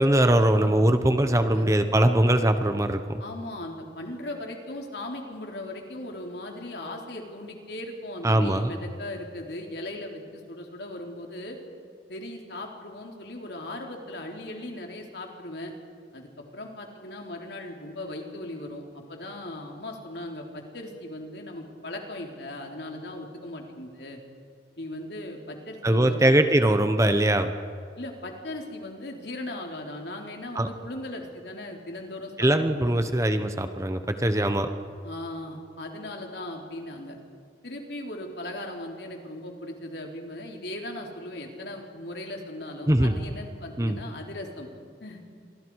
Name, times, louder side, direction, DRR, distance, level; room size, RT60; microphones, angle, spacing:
voice 1, 0.0-3.2 8.2-8.7 25.8-27.5 30.6-30.7 32.4-34.7 42.9-43.1 43.8-44.0, right 1 dB, 15° right, 8 dB, 1.0 m, -21 dB
voice 2, 3.2-11.6 12.1-15.7 16.1-24.2 24.8-26.4 28.0-32.5 32.9-33.1 35.0-37.2 37.6-44.7 45.0-45.2, left 1 dB, 65° left, 1 dB, 3.4 m, -38 dB
28.0 x 24.0 x 4.8 m, 2.2 s
head